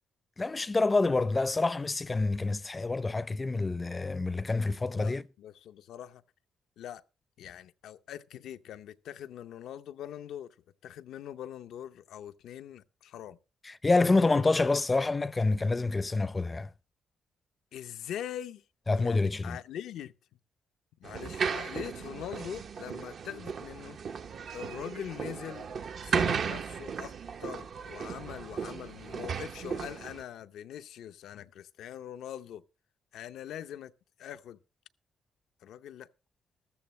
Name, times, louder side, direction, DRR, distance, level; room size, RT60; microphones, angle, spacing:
voice 1, 0.4-5.2 13.6-16.7 18.9-19.6, left 3 dB, 25° left, 0.5 m, -27 dB
voice 2, 4.9-6.2 6.8-7.0 7.4-10.5 10.8-13.4 17.7-18.6 18.9-20.1 21.0-24.0 24.5-25.7 26.0-27.1 27.4-32.6 33.1-33.9 34.2-34.6 35.6-36.1, left 10 dB, 75° left, 0.6 m, -42 dB
sound 1, 21.0-30.2, right 6 dB, 55° right, 0.8 m, -35 dB
14.0 x 14.0 x 3.1 m
cardioid pair, 90°, 0 cm